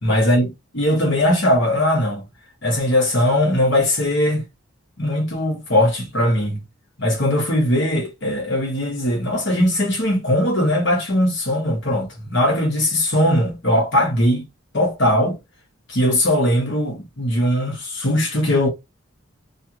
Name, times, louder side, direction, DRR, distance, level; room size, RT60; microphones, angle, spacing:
voice 1, 0.0-0.5 0.7-2.2 2.6-4.4 5.0-6.6 7.0-14.5 14.7-15.4 15.9-18.7, left 1 dB, 60° left, 1.4 m, -19 dB
3.3 x 2.5 x 2.9 m
head